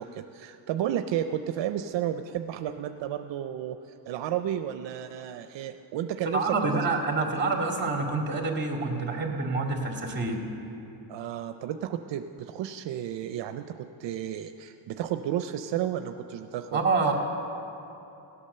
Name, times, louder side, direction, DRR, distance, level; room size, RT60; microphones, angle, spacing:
voice 1, 0.0-3.8 4.1-6.6 11.1-16.8, right 10 dB, 75° right, 8 dB, 0.6 m, -32 dB
voice 2, 6.2-10.4 16.7-17.1, right 3 dB, 25° right, 1 dB, 2.3 m, -27 dB
17.0 x 8.6 x 6.7 m, 2.9 s
cardioid pair, 110°, 45 cm